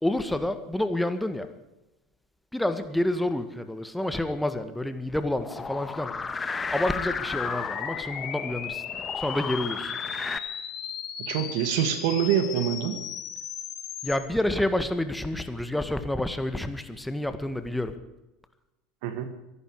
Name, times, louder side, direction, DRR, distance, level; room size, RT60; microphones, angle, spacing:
voice 1, 0.0-1.5 2.5-6.1 6.7-8.8 9.1-10.0 14.0-18.0, left 1 dB, 5° left, 9 dB, 1.8 m, -28 dB
sound 1, 5.4-10.4, left 4 dB, 25° left, 1.4 m, -34 dB
sound 2, 6.8-14.2, left 8 dB, 50° left, 3.3 m, -36 dB
voice 2, 11.2-13.0 19.0-19.3, right 9 dB, 70° right, 9 dB, 2.1 m, -26 dB
24.5 x 11.5 x 5.0 m, 0.96 s
hypercardioid pair, 75°, 0 cm